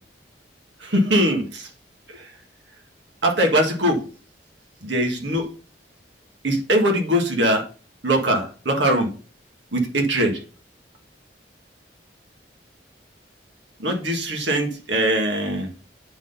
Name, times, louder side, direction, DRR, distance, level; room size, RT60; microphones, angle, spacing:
voice 1, 0.8-1.7 2.1-2.2 3.2-4.0 4.8-5.5 6.4-7.6 8.0-9.1 9.7-10.4 13.8-15.7, right 1 dB, 85° right, 2 dB, 1.8 m, -21 dB
8.9 x 4.0 x 5.5 m, 0.38 s
head